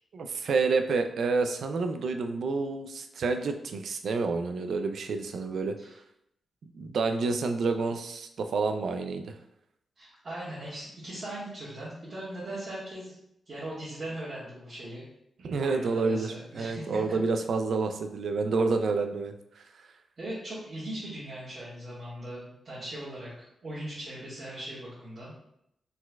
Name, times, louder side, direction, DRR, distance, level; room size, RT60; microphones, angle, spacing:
voice 1, 0.1-5.7 6.7-9.3 15.4-19.3, right 4 dB, 65° right, 7 dB, 0.4 m, -29 dB
voice 2, 10.0-13.1 13.4-15.1 15.6-17.0 20.2-25.4, right 1 dB, 40° right, -10 dB, 1.5 m, -39 dB
4.5 x 4.0 x 2.3 m, 0.78 s
wide cardioid pair, 150°, 0 cm